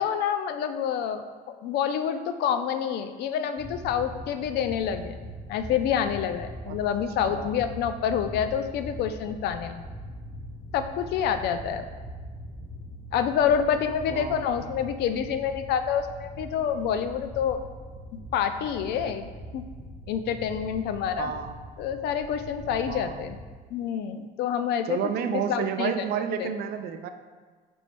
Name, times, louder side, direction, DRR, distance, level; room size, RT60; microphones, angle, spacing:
voice 1, 0.0-5.2 5.5-9.8 10.7-11.9 13.1-17.6 18.3-19.6 20.1-21.3 21.8-23.4 23.7-25.0 25.3-26.1 26.4-26.5, left 8 dB, 75° left, 9 dB, 0.4 m, -27 dB
sound 1, 3.6-23.5, equal, 20° left, 1.2 m, -41 dB
voice 2, 14.1-14.7 21.2-21.5 22.9-23.3 24.9-27.1, right 8 dB, 65° right, 8 dB, 0.4 m, -31 dB
5.3 x 3.0 x 3.3 m, 1.4 s
cardioid pair, 110°, 17 cm